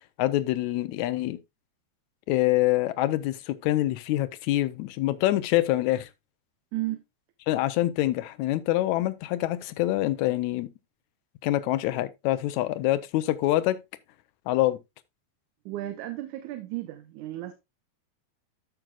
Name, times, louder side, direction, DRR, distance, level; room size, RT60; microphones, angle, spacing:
voice 1, 0.2-1.4 2.3-6.1 7.5-10.7 11.4-13.8 14.5-14.8, left 15 dB, 80° left, 2.0 m, -25 dB
voice 2, 6.7-7.0 15.7-17.5, right 16 dB, 80° right, 2.2 m, -34 dB
14.0 x 6.1 x 2.3 m
omnidirectional pair, 3.5 m